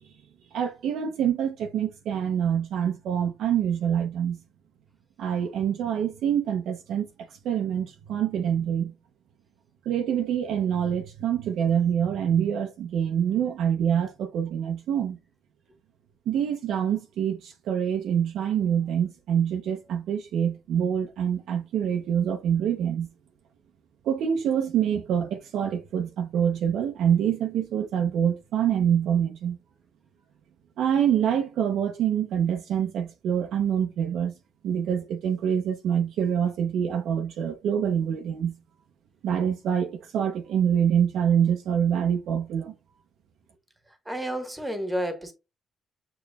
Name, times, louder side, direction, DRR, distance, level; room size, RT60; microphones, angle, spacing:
voice 1, 0.5-4.4 5.2-7.1 7.4-8.9 9.9-15.2 16.3-23.1 24.0-29.6 30.8-34.3 34.6-38.6 39.2-42.7, right 8 dB, 80° right, 0.6 m, -25 dB
voice 2, 44.1-45.3, equal, 10° right, 1.2 m, -30 dB
6.8 x 2.9 x 2.3 m
cardioid pair, 90°, 0 cm